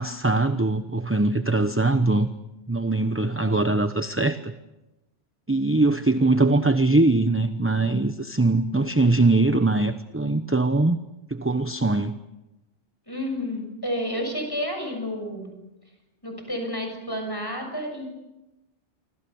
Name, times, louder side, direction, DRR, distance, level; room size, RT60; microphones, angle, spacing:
voice 1, 0.0-2.3 2.7-4.5 5.5-11.0 11.3-12.2, right 2 dB, 15° right, 10 dB, 0.8 m, -22 dB
voice 2, 13.1-15.5 16.2-18.1, equal, 20° left, 4 dB, 7.0 m, -30 dB
28.0 x 25.5 x 7.1 m, 1.0 s
omnidirectional pair, 1.2 m